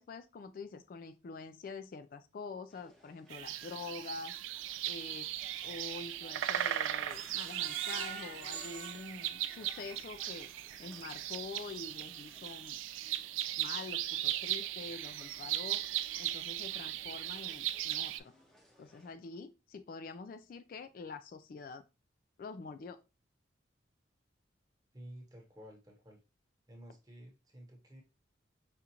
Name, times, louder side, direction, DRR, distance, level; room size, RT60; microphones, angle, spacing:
voice 1, 0.0-4.4 4.9-5.3 5.6-10.5 10.8-12.8 13.6-15.9 16.2-18.3 18.8-21.8 22.4-23.0, left 4 dB, 45° left, 0.3 m, -46 dB
sound 1, 2.7-19.1, equal, ahead, 0.6 m, -61 dB
sound 2, 3.3-18.2, right 13 dB, 85° right, 0.3 m, -38 dB
Screech, 7.1-10.1 10.5-10.6 11.0-11.1, right 6 dB, 50° right, 0.8 m, -47 dB
voice 2, 24.9-26.2 26.7-28.0, equal, 20° right, 0.9 m, -52 dB
5.1 x 2.4 x 2.8 m
head